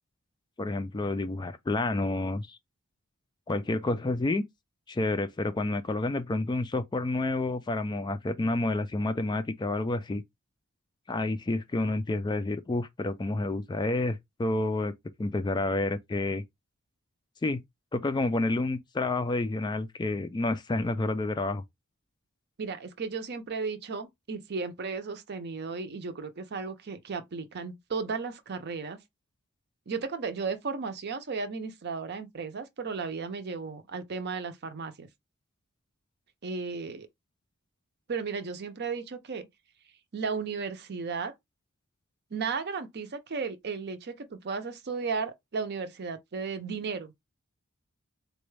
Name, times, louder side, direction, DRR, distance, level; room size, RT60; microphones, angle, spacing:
voice 1, 0.6-2.6 3.5-4.4 4.9-10.2 11.1-14.9 15.2-16.4 17.4-17.6 17.9-21.6, left 2 dB, 20° left, 0.3 m, -29 dB
voice 2, 22.6-29.0 29.9-35.1 36.4-37.1 38.1-39.5 40.1-41.3 42.3-47.3, right 5 dB, 50° right, 0.6 m, -35 dB
4.0 x 2.2 x 3.1 m
head